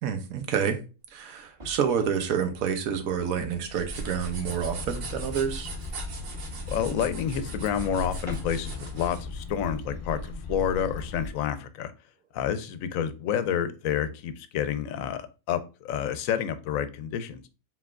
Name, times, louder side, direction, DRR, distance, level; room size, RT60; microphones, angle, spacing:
voice 1, 0.0-0.8 1.1-5.7, right 7 dB, 75° right, 1.2 m, -28 dB
sound 1, 1.4-4.0 4.4-4.5 4.9-5.0 5.3-5.4 5.7-5.8 6.1-8.7, left 2 dB, 25° right, 1.5 m, -46 dB
sound 2, 3.6-9.2, right 3 dB, 50° right, 0.8 m, -41 dB
sound 3, 3.9-11.3, left 2 dB, 55° left, 0.4 m, -37 dB
voice 2, 6.7-11.9 12.3-17.4, left 9 dB, 75° left, 0.9 m, -29 dB
4.6 x 3.7 x 2.4 m
omnidirectional pair, 1.5 m